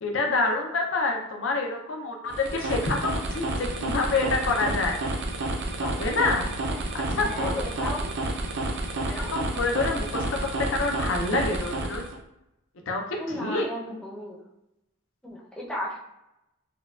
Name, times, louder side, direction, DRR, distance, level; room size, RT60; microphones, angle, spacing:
voice 1, 0.0-5.0 5.8-6.5 6.9-7.9 9.0-12.0 12.9-13.7, left 3 dB, 65° left, 1 dB, 0.5 m, -27 dB
sound 1, 2.3-12.2, right 2 dB, 55° right, 0.4 m, -30 dB
voice 2, 7.2-8.1 9.0-9.3 13.2-14.4 15.2-16.0, left 1 dB, 5° left, -5 dB, 0.6 m, -34 dB
4.3 x 2.2 x 2.3 m, 0.90 s
head